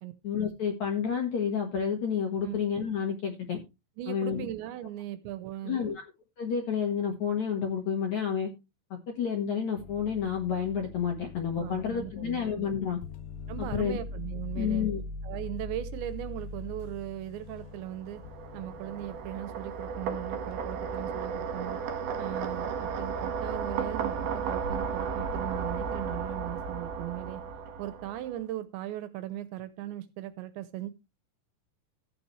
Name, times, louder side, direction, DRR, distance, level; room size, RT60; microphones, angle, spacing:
voice 1, 0.2-3.6 4.1-4.5 5.6-6.0 6.4-8.5 9.1-13.0 13.6-14.0 14.5-15.0, left 7 dB, 60° left, 2.0 m, -30 dB
voice 2, 4.0-5.9 11.6-12.7 13.5-14.9 15.2-18.2 18.5-21.8 22.2-27.4 27.8-30.9, right 13 dB, 75° right, 3.0 m, -38 dB
sound 1, 9.8-21.5 22.4-22.8, left 2 dB, 80° left, 3.0 m, -42 dB
sound 2, 17.7-28.3, right 6 dB, 60° right, 3.1 m, -34 dB
14.5 x 8.5 x 3.2 m
omnidirectional pair, 5.5 m